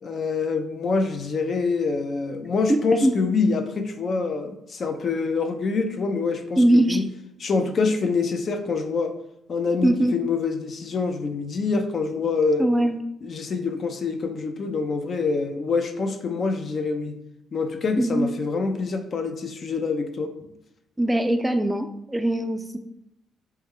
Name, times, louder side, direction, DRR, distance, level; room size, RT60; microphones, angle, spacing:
voice 1, 0.0-7.0 7.4-9.1 9.5-12.6 13.2-17.2 17.5-20.3, left 4 dB, 50° left, 7 dB, 0.5 m, -25 dB
voice 2, 2.7-3.2 6.6-7.0 9.8-10.2 12.6-13.0 18.0-18.3 21.0-22.8, right 1 dB, 10° right, 7 dB, 0.3 m, -21 dB
4.4 x 2.1 x 3.5 m, 0.84 s
cardioid pair, 90°, 0 cm